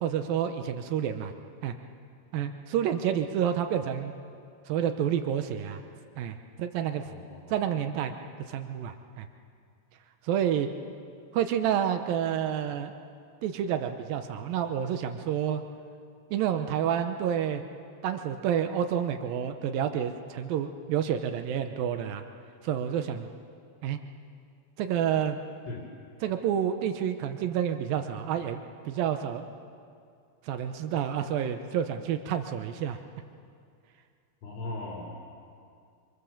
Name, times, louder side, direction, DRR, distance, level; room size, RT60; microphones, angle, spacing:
voice 1, 0.0-1.3 1.6-1.7 2.3-4.1 4.7-5.8 6.2-7.1 7.5-8.1 8.5-9.3 10.2-10.7 11.3-12.9 13.4-15.6 16.3-17.6 18.0-22.2 22.6-23.3 23.8-24.0 24.8-25.4 26.2-29.4 30.4-33.0, right 9 dB, 90° right, 7 dB, 2.0 m, -29 dB
voice 2, 7.1-7.5 25.7-25.8 34.4-35.3, left 2 dB, 85° left, -1 dB, 5.5 m, -38 dB
26.5 x 26.0 x 7.2 m, 2.3 s
omnidirectional pair, 5.5 m